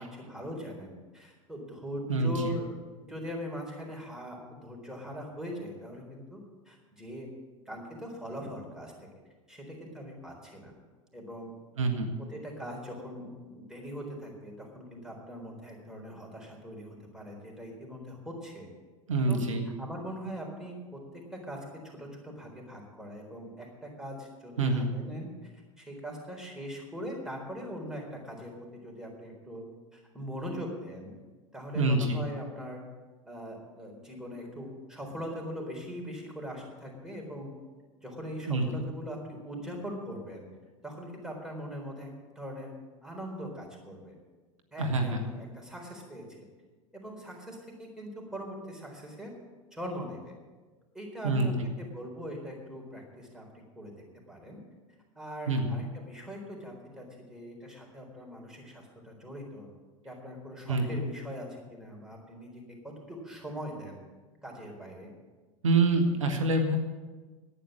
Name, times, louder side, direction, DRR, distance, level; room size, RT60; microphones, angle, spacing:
voice 1, 0.0-6.4 6.7-7.3 7.7-8.9 9.5-10.7 11.1-11.5 12.3-18.7 19.3-19.4 19.8-21.0 21.3-29.6 29.9-31.1 31.5-32.8 33.3-37.5 38.0-40.5 40.8-42.1 42.4-42.7 43.0-44.1 44.7-46.5 46.9-49.3 49.7-50.3 50.9-51.5 51.8-53.9 54.3-54.6 55.2-59.7 60.0-64.0 64.4-65.1, equal, 5° right, -1 dB, 4.0 m, -41 dB
voice 2, 2.1-2.5 11.8-12.1 19.1-19.6 24.6-24.9 31.7-32.2 38.5-38.9 44.8-45.2 51.2-51.7 55.5-55.8 60.7-61.1 65.6-66.8, right 2 dB, 75° right, 4 dB, 1.2 m, -26 dB
11.0 x 9.0 x 7.5 m, 1.3 s
figure-of-eight pair, 80°, 17 cm